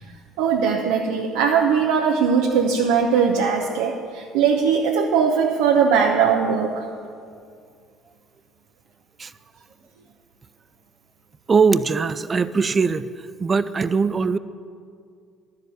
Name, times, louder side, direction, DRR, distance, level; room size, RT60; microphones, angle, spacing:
voice 1, 0.4-6.8, right 6 dB, 65° right, 1 dB, 0.8 m, -20 dB
voice 2, 11.5-13.1 13.4-14.4, right 5 dB, 30° right, 15 dB, 0.5 m, -20 dB
12.5 x 7.2 x 8.1 m, 2.3 s
figure-of-eight pair, 55°, 0 cm